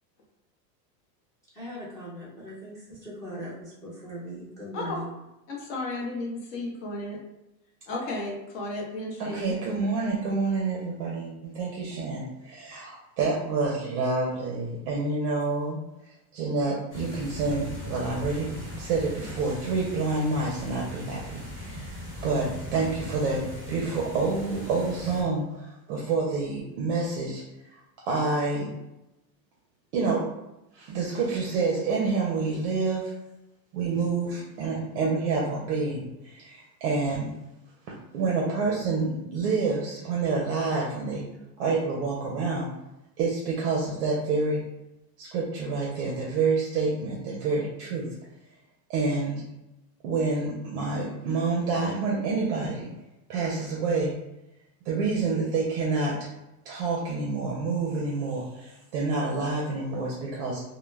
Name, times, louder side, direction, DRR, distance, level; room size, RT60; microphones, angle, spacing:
voice 1, 1.5-5.1, equal, 5° left, -9 dB, 0.5 m, -39 dB
voice 2, 5.5-7.2 7.9-9.7, left 2 dB, 45° left, -2 dB, 0.8 m, -33 dB
voice 3, 9.2-15.8 16.3-18.5 18.8-21.9 22.2-27.4 28.1-28.7 29.9-30.2 30.7-33.1 33.7-37.3 37.9-41.2 41.6-42.7 43.2-44.6 45.2-48.1 48.9-49.4 50.0-52.9 53.3-54.1 54.9-56.2 56.7-60.6, right 3 dB, 45° right, -3 dB, 0.5 m, -28 dB
sound 1, 16.9-25.2, left 1 dB, 25° left, 1.2 m, -39 dB
2.1 x 2.1 x 3.2 m, 0.91 s
supercardioid pair, 160°, 50 cm